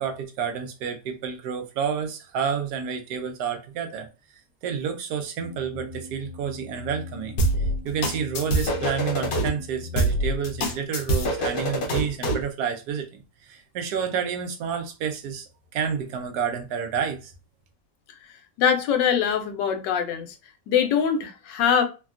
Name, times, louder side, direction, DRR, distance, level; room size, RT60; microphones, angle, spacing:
voice 1, 0.0-4.1 4.6-7.3 7.8-13.1 13.5-15.4 15.7-17.3, right 7 dB, 75° right, 1.0 m, -29 dB
sound 1, 5.4-10.7, left 5 dB, 55° right, 1.3 m, -40 dB
sound 2, 7.4-9.5 10.0-12.5, right 1 dB, 70° left, 1.2 m, -25 dB
voice 2, 18.6-20.4 20.7-21.8, left 8 dB, 90° left, 1.3 m, -23 dB
3.3 x 2.2 x 2.4 m
omnidirectional pair, 1.8 m